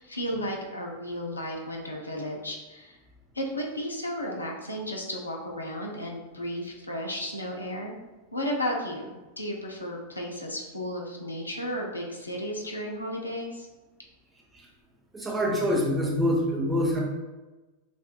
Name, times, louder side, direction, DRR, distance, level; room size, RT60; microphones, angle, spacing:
voice 1, 0.0-3.0 3.3-7.9 8.3-13.7, equal, 80° left, 0 dB, 0.7 m, -34 dB
voice 2, 15.1-17.0, equal, 15° right, -2 dB, 0.9 m, -25 dB
5.9 x 2.5 x 2.4 m, 1.2 s
figure-of-eight pair, 90°, 0 cm